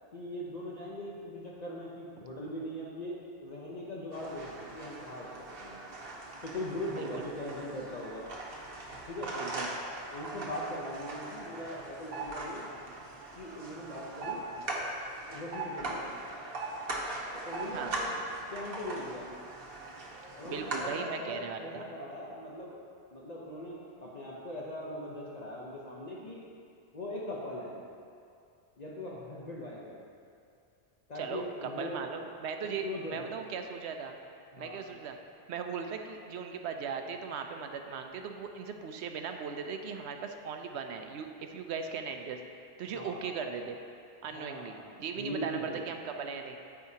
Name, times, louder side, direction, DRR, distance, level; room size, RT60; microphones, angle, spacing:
voice 1, 0.1-5.8 6.4-8.2 9.1-9.3 10.1-12.7 13.4-14.4 15.3-16.1 17.3-18.1 18.5-19.3 20.4-22.8 23.1-26.4 26.9-27.8 28.8-30.0 31.1-32.0 32.8-33.3 34.5-34.8 42.8-43.3 44.3-45.8, left 1 dB, 45° left, -5 dB, 0.8 m, -40 dB
sound 1, 4.1-20.9, right 2 dB, 60° right, 1.2 m, -40 dB
voice 2, 9.3-9.7 17.7-17.9 20.4-21.8 31.2-34.2 34.6-35.2 35.5-42.4 42.8-43.8 44.2-46.6, right 6 dB, 85° right, 5 dB, 0.9 m, -38 dB
13.5 x 4.8 x 2.8 m, 2.4 s
omnidirectional pair, 1.1 m